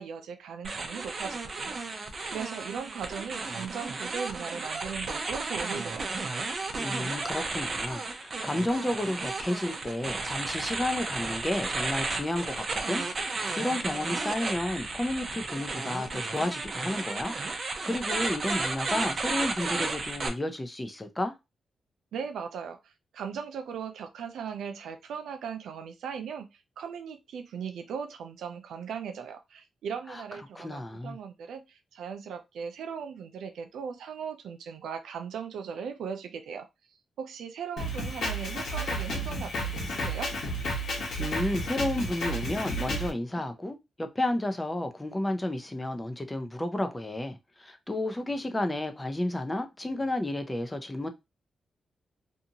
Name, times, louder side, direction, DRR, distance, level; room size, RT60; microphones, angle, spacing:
voice 1, 0.0-1.8 2.3-6.1 22.1-36.7 37.2-40.3, right 7 dB, 85° right, 0.4 m, -38 dB
sound 1, 0.6-20.3, right 3 dB, 50° right, 0.6 m, -33 dB
voice 2, 6.8-17.3 17.6-21.3 30.1-30.2 30.5-31.2 41.2-51.1, left 1 dB, 20° left, 0.6 m, -32 dB
Drum kit, 37.8-43.1, equal, 75° left, 1.1 m, -32 dB
2.7 x 2.4 x 2.8 m
cardioid pair, 80°, 0 cm